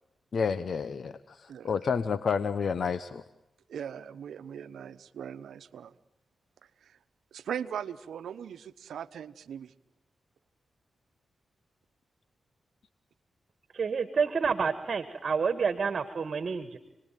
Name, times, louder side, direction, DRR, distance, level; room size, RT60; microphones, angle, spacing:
voice 1, 0.3-3.2, left 6 dB, 70° left, 13 dB, 1.0 m, -30 dB
voice 2, 3.7-5.9 6.8-7.0 7.3-9.7, right 8 dB, 90° right, 13 dB, 1.0 m, -39 dB
voice 3, 13.7-16.8, right 5 dB, 60° right, 11 dB, 1.7 m, -29 dB
29.5 x 20.5 x 9.2 m, 0.94 s
cardioid pair, 55°, 0 cm